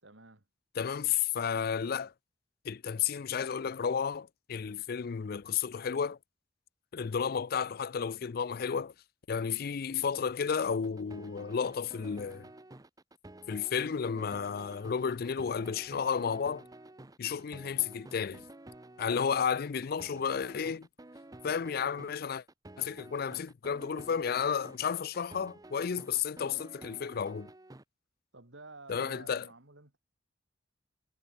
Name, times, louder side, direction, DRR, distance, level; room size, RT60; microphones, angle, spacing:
voice 1, 0.0-0.4 28.3-30.0, right 3 dB, 85° right, 3.6 m, -52 dB
voice 2, 0.8-2.1 2.6-6.2 6.9-8.9 9.3-12.5 13.5-16.7 17.2-18.5 19.0-20.9 21.4-22.4 22.8-27.5 28.9-29.5, left 7 dB, 55° left, 0.4 m, -32 dB
sound 1, 10.7-27.8, right 1 dB, 20° right, 0.9 m, -51 dB
head